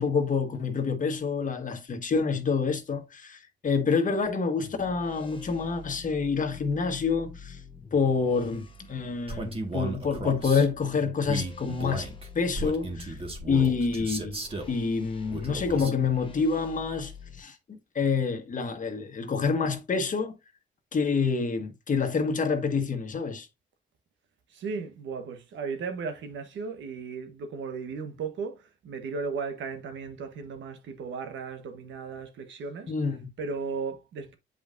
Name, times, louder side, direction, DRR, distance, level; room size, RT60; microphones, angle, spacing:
voice 1, 0.0-7.6 7.9-12.1 12.3-13.2 13.5-14.4 14.7-20.3 20.9-23.5 32.9-33.3, left 5 dB, 40° left, 1.4 m, -27 dB
sound 1, 4.6-17.4, left 5 dB, 25° left, 1.1 m, -47 dB
Male speech man speaking, 9.3-10.7 11.2-14.8 15.3-16.0, right 2 dB, 30° right, 1.8 m, -35 dB
voice 2, 24.5-32.9 33.4-34.4, right 5 dB, 70° right, 1.3 m, -36 dB
8.1 x 5.1 x 2.6 m
cardioid pair, 90°, 20 cm